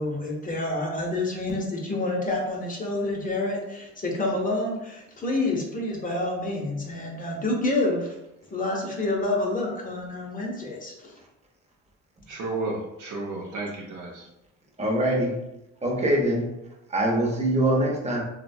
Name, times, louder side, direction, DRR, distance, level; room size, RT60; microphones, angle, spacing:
voice 1, 0.0-8.1 8.5-11.1, left 2 dB, 30° left, -2 dB, 0.7 m, -28 dB
voice 2, 12.3-14.3, right 2 dB, 75° right, -3 dB, 0.8 m, -32 dB
voice 3, 14.8-15.4 15.8-16.5 16.9-18.2, right 1 dB, 20° right, -1 dB, 0.7 m, -23 dB
2.9 x 2.1 x 2.6 m, 0.90 s
cardioid pair, 90°, 30 cm